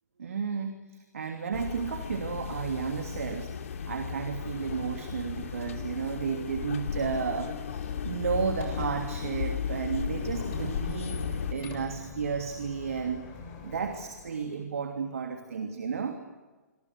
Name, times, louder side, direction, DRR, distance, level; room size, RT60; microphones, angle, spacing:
voice 1, 0.2-3.5 3.9-13.3 13.6-16.2, right 6 dB, 60° right, 6 dB, 3.0 m, -33 dB
sound 1, 1.5-11.5, left 7 dB, 55° left, 2.7 m, -35 dB
Squeak, 8.1-14.5, left 6 dB, 30° left, 7.4 m, -44 dB
28.5 x 24.5 x 7.9 m, 1.3 s
figure-of-eight pair, 120°, 9 cm